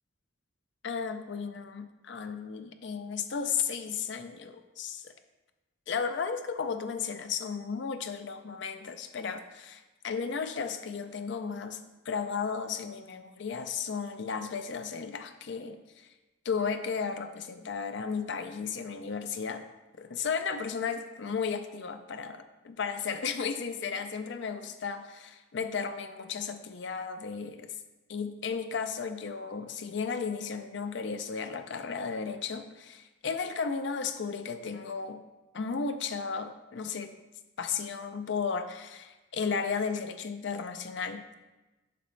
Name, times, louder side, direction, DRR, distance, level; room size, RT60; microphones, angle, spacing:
voice 1, 0.8-5.1 5.9-11.8 12.1-16.1 16.4-19.6 20.0-27.8 28.1-35.2 35.5-37.1 37.6-41.3, left 5 dB, 60° left, 8 dB, 0.5 m, -34 dB
6.9 x 5.2 x 3.2 m, 1.1 s
head